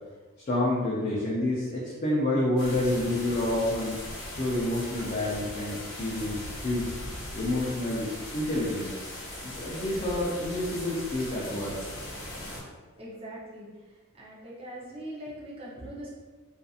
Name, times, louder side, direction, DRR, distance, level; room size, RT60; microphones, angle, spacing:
voice 1, 0.5-4.0 4.3-7.0 7.3-9.0 9.4-11.8, left 1 dB, 35° left, -7 dB, 0.4 m, -28 dB
sound 1, 2.6-12.6, left 1 dB, 65° left, 0.9 m, -39 dB
voice 2, 13.0-13.7 14.2-16.1, right 1 dB, 25° right, -7 dB, 0.6 m, -41 dB
2.7 x 2.4 x 2.3 m, 1.4 s
head